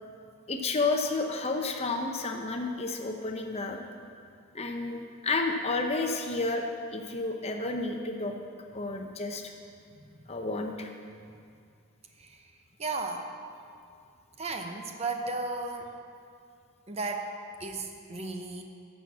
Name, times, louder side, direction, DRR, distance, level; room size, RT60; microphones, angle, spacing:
voice 1, 0.5-3.8 4.5-8.3 8.7-9.5 10.3-10.9, left 3 dB, 30° left, 4 dB, 0.7 m, -31 dB
voice 2, 12.8-13.2 14.4-15.9 16.9-17.3 17.6-18.6, right 3 dB, 30° right, 4 dB, 0.8 m, -35 dB
11.5 x 6.4 x 7.2 m, 2.4 s
head